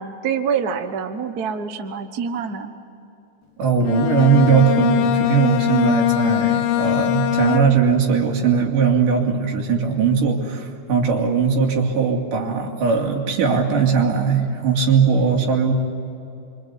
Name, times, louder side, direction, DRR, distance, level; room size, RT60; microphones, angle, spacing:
voice 1, 0.0-2.7, right 6 dB, 55° right, 7 dB, 1.0 m, -26 dB
voice 2, 3.6-15.7, right 6 dB, 90° right, 1 dB, 4.1 m, -19 dB
Bowed string instrument, 3.8-8.1, left 13 dB, 75° left, 1.4 m, -21 dB
27.0 x 24.5 x 8.3 m, 2.8 s
omnidirectional pair, 3.6 m